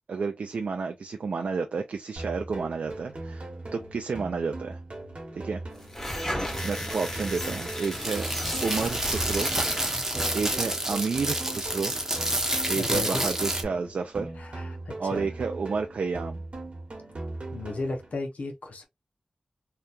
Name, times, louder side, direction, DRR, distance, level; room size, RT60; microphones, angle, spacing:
voice 1, 0.1-4.8 5.4-5.6 6.6-8.3 8.6-9.5 10.3-11.9 12.7-14.3 15.0-16.4, right 5 dB, 85° right, 0.3 m, -30 dB
sound 1, 2.2-18.2, right 2 dB, 55° right, 1.1 m, -39 dB
sound 2, 5.8-10.2, equal, 15° left, 1.2 m, -34 dB
sound 3, 7.9-13.6, right 1 dB, 20° right, 0.8 m, -29 dB
voice 2, 12.7-13.2 14.4-15.3 17.5-18.9, left 3 dB, 80° left, 0.7 m, -34 dB
2.8 x 2.2 x 2.4 m
cardioid pair, 55°, 2 cm